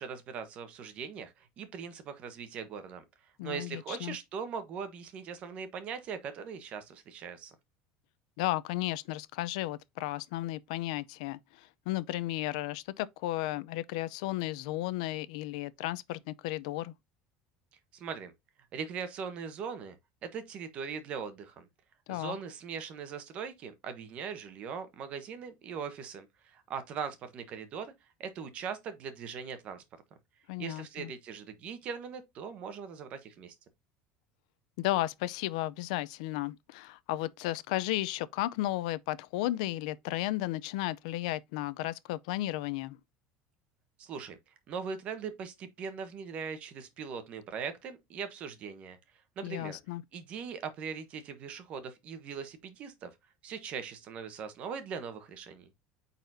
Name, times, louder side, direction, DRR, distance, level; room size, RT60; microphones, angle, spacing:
voice 1, 0.0-3.0 3.4-7.5 17.9-18.3 18.7-19.9 20.2-21.7 22.1-27.9 28.2-29.8 30.6-33.5 44.0-44.4 44.7-49.0 49.4-49.8 50.1-53.1 53.4-55.7, right 6 dB, 35° right, 1.2 m, -40 dB
voice 2, 3.4-4.2 8.4-11.4 11.9-16.9 22.1-22.4 30.5-31.1 34.8-43.0 49.4-50.0, left 16 dB, 90° left, 0.5 m, -34 dB
9.0 x 4.1 x 2.7 m
cardioid pair, 175°, 4 cm